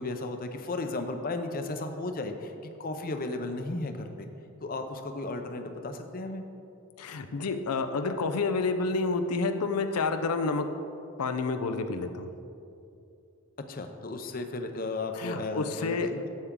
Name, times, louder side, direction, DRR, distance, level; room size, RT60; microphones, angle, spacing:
voice 1, 0.0-2.5 2.8-4.3 4.6-6.4 13.7-16.3, left 2 dB, 40° left, 6 dB, 0.6 m, -34 dB
voice 2, 7.0-10.7 11.2-12.3 15.1-16.1, left 3 dB, 85° left, 8 dB, 0.6 m, -29 dB
11.5 x 8.1 x 3.7 m, 2.6 s
head